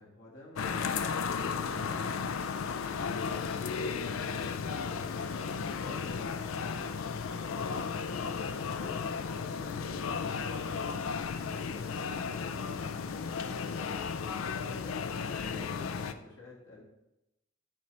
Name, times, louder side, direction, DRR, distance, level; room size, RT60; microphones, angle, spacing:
voice 1, 0.0-9.0 9.4-10.9 11.2-16.8, left 1 dB, 70° left, -4 dB, 1.9 m, -52 dB
sound 1, 0.6-16.1, left 5 dB, 90° left, 0.4 m, -34 dB
9.6 x 5.2 x 3.3 m, 0.91 s
head